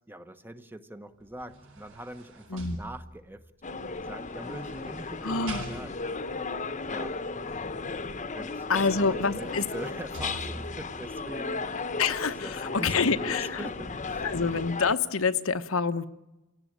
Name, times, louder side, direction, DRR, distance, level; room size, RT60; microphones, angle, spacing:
voice 1, 0.1-3.5 3.8-5.9 6.9-7.2 8.3-14.3, right 1 dB, 10° right, 10 dB, 1.1 m, -43 dB
sound 1, 1.2-3.4 4.3-6.3 8.5-8.6 9.0-11.0 11.5-11.7, right 1 dB, 65° right, 7.0 m, -44 dB
sound 2, 3.6-14.9, left 3 dB, 35° left, 1.1 m, -35 dB
voice 2, 5.2-5.6 8.7-9.6 12.0-13.7 14.2-16.1, left 4 dB, 75° left, 10 dB, 1.1 m, -27 dB
27.5 x 17.5 x 8.9 m, 1.0 s
head